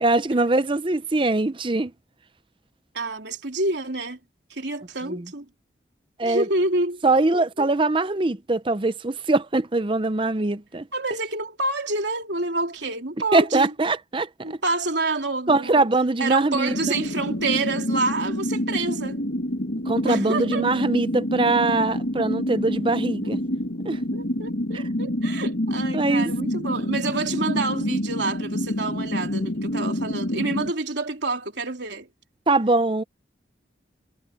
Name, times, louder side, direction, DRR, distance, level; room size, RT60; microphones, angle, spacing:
voice 1, 0.0-1.9 5.1-5.3 6.2-6.4 7.0-10.9 13.3-14.3 15.5-17.0 19.9-23.4 23.8-24.0 24.7-24.8 25.9-26.3 32.5-33.0, right 2 dB, 30° right, 0.7 m, -22 dB
voice 2, 2.9-4.2 4.5-5.5 6.2-7.0 7.3-7.7 10.9-13.7 14.4-15.9 16.2-19.2 20.0-20.9 23.2-23.3 23.9-32.1, right 2 dB, 75° right, 3.2 m, -28 dB
sound 1, 16.7-30.7, left 1 dB, 75° left, 1.8 m, -27 dB
head